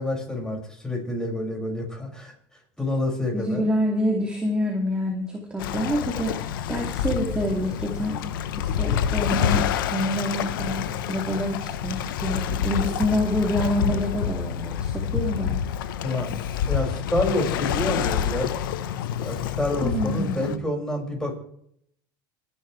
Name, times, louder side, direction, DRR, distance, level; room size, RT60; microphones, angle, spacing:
voice 1, 0.0-2.3 2.8-3.6 16.0-16.4 16.7-18.5 19.2-21.3, left 1 dB, 5° left, 0 dB, 6.3 m, -28 dB
voice 2, 3.3-8.2 8.6-15.6 19.8-20.5, equal, 10° right, -1 dB, 2.9 m, -27 dB
Waves surf, 5.6-20.6, left 9 dB, 85° left, 1.1 m, -27 dB
28.0 x 10.5 x 3.4 m, 0.70 s
supercardioid pair, 110°, 11 cm